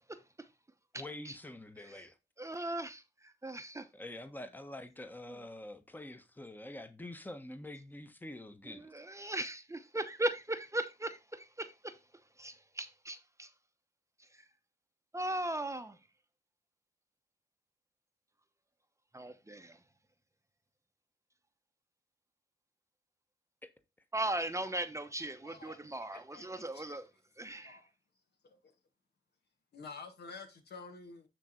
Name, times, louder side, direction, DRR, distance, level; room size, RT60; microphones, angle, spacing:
voice 1, 0.9-2.2 3.9-8.9 23.6-23.7, left 1 dB, 10° left, 1.2 m, -46 dB
voice 2, 2.4-3.9 8.7-12.0 12.4-13.5 15.1-16.0 19.1-19.8 24.1-27.1 27.4-27.8, right 1 dB, 15° right, 0.9 m, -38 dB
voice 3, 25.4-25.8 26.1-27.0 27.4-27.9 28.4-28.6 29.7-31.3, left 4 dB, 65° left, 1.9 m, -50 dB
9.1 x 3.6 x 4.4 m
cardioid pair, 60°, 18 cm